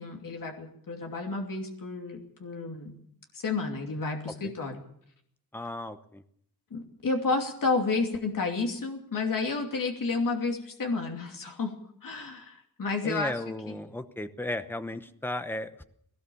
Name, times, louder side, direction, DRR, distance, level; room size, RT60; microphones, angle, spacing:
voice 1, 0.0-3.0 3.3-4.8 6.7-11.7 12.0-13.3, left 3 dB, 60° left, 2 dB, 2.8 m, -31 dB
voice 2, 5.5-6.2 13.0-15.8, left 1 dB, 5° left, 9 dB, 0.9 m, -35 dB
20.0 x 18.0 x 7.1 m, 0.70 s
wide cardioid pair, 180°, 37 cm